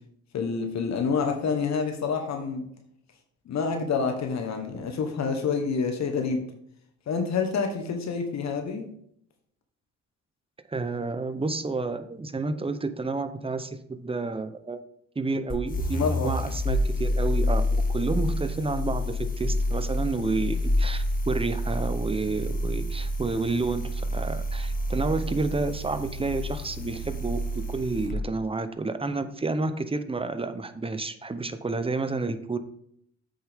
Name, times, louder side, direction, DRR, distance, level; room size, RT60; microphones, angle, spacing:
voice 1, 0.3-2.6 3.5-6.4 7.1-8.9 16.0-16.3, left 5 dB, 65° left, 4 dB, 1.3 m, -27 dB
voice 2, 10.7-14.8 15.2-32.6, right 3 dB, 20° right, 10 dB, 0.8 m, -30 dB
sound 1, 15.5-28.2, left 1 dB, 30° left, 1.4 m, -28 dB
8.0 x 6.6 x 3.6 m, 0.69 s
cardioid pair, 90°, 30 cm